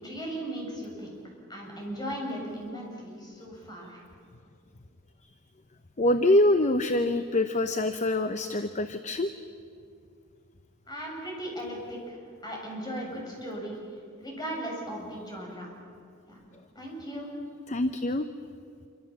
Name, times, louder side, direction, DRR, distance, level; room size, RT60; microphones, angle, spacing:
voice 1, 0.0-1.2 1.5-4.0 10.9-13.7 14.2-15.7 16.3-16.4 16.8-17.3, equal, 20° left, -1 dB, 7.6 m, -37 dB
voice 2, 6.0-9.3 17.7-18.3, left 1 dB, 35° left, 9 dB, 0.8 m, -25 dB
27.0 x 25.5 x 7.4 m, 2.3 s
head